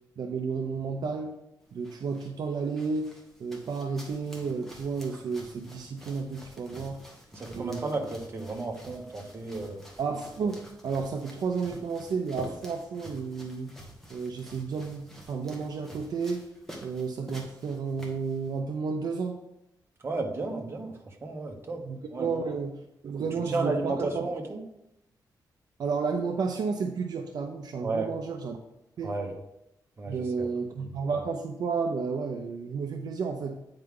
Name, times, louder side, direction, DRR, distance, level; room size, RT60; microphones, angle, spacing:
voice 1, 0.2-1.4 1.7-7.0 7.5-8.1 10.0-13.8 14.1-16.5 16.8-19.4 21.8-24.3 25.8-28.6 29.0-29.2 30.1-33.6, right 5 dB, 65° right, 3 dB, 0.7 m, -32 dB
sound 1, 1.6-18.6, equal, 5° left, 1.5 m, -48 dB
voice 2, 7.3-9.8 20.0-21.8 22.1-22.4 23.5-24.6 27.8-28.1 29.0-29.4 30.0-30.5, right 3 dB, 35° right, 1 dB, 1.3 m, -33 dB
9.1 x 4.8 x 3.8 m, 0.86 s
wide cardioid pair, 140°, 7 cm